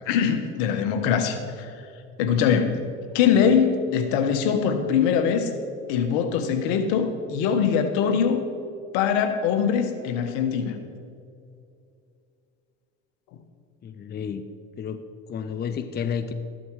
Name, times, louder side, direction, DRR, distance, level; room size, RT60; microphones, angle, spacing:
voice 1, 0.0-1.8 2.2-2.8 3.1-5.5 5.9-8.4 8.9-10.8, left 7 dB, 75° left, 7 dB, 1.4 m, -22 dB
voice 2, 13.8-14.4 14.8-16.3, left 7 dB, 30° left, 10 dB, 0.7 m, -31 dB
14.0 x 11.5 x 4.8 m, 2.5 s
supercardioid pair, 95°, 32 cm